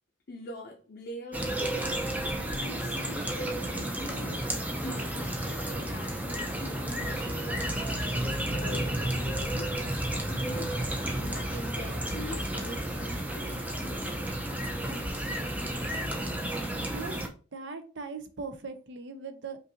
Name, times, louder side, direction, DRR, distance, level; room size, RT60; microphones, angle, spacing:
voice 1, 0.3-4.4 4.8-9.7 10.3-10.7 11.2-13.9, left 2 dB, 50° left, 0.6 m, -44 dB
sound 1, 1.3-17.3, right 1 dB, 10° right, 0.5 m, -32 dB
voice 2, 16.9-17.2 17.5-19.6, right 4 dB, 60° right, 0.6 m, -39 dB
5.3 x 2.6 x 2.7 m
head